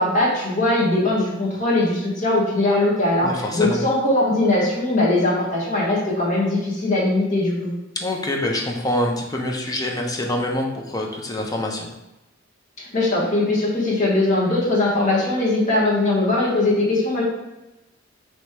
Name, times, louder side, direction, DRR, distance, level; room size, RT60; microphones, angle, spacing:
voice 1, 0.0-7.7 12.8-17.2, left 2 dB, 40° left, -6 dB, 1.4 m, -20 dB
voice 2, 3.2-3.8 8.0-11.9, left 1 dB, 20° left, 0 dB, 0.6 m, -25 dB
3.1 x 3.1 x 4.6 m, 0.98 s
head